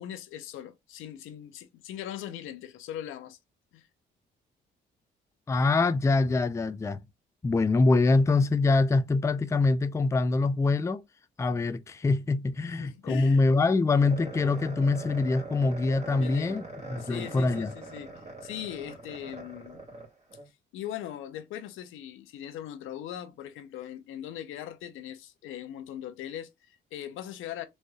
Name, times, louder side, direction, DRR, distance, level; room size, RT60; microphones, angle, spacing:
voice 1, 0.0-3.4 3.7-3.9 12.6-13.4 16.2-16.6 17.0-18.1 18.4-19.9 20.7-27.6, left 11 dB, 85° left, 0.7 m, -40 dB
voice 2, 5.5-7.0 7.4-11.0 11.4-16.6 16.9-17.7, left 3 dB, 15° left, 0.4 m, -24 dB
sound 1, 14.0-20.5, right 2 dB, 35° right, 2.1 m, -42 dB
4.1 x 3.2 x 2.3 m
cardioid pair, 90°, 20 cm